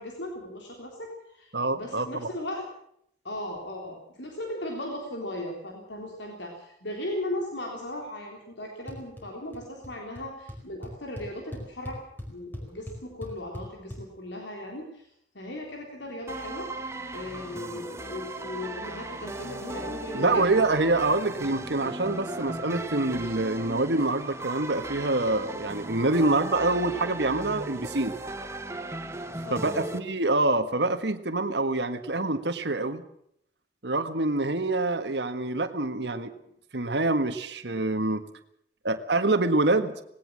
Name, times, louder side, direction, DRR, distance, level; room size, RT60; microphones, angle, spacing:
voice 1, 0.0-2.7 3.2-12.0 12.3-15.1 15.3-16.7 17.1-20.4 29.4-30.0, left 1 dB, 75° left, 1 dB, 3.9 m, -37 dB
voice 2, 1.5-2.3 20.1-28.1 29.5-33.0 33.8-36.3 36.7-38.2 38.8-39.9, right 2 dB, 65° right, 8 dB, 1.6 m, -26 dB
sound 1, 8.9-9.2 9.5-9.9 10.2-10.3 10.5-14.0, left 1 dB, 10° left, 4.8 m, -39 dB
sound 2, 16.3-30.0, right 2 dB, 15° right, 1.3 m, -37 dB
19.0 x 18.0 x 7.6 m, 0.70 s
head